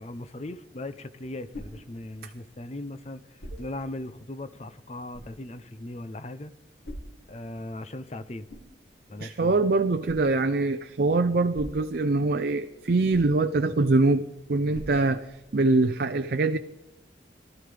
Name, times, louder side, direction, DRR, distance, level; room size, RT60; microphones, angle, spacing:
voice 1, 0.0-3.2 3.6-6.5 7.3-8.5 9.1-9.6, left 1 dB, 35° left, 0.6 m, -38 dB
sound 1, 0.9-15.8, equal, 85° left, 3.5 m, -49 dB
voice 2, 9.2-15.2 15.5-16.6, right 3 dB, 50° right, 0.5 m, -23 dB
19.0 x 13.0 x 3.4 m
head